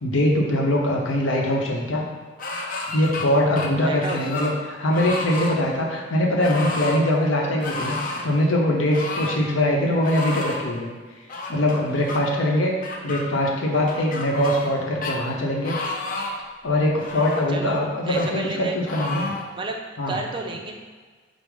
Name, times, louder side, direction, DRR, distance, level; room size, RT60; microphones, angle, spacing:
voice 1, 0.0-2.1 2.9-10.9 11.5-12.8 13.0-15.8 16.6-19.3 20.0-20.2, left 1 dB, 85° left, -1 dB, 0.8 m, -22 dB
sound 1, 2.4-3.3 3.6-4.6 4.9-5.6 6.4-7.0 7.6-8.3 8.9-9.4 10.0-10.6 11.3-12.2 12.8-13.2 13.9-14.8 15.0-15.2 15.6-16.4 17.0-17.5 18.1-18.3 18.9-19.5, left 2 dB, 45° left, 0.5 m, -31 dB
voice 2, 3.8-4.2 17.5-18.8 19.6-19.8 20.1-20.7, right 2 dB, 25° right, 2 dB, 0.4 m, -31 dB
5.3 x 2.0 x 4.7 m, 1.5 s
head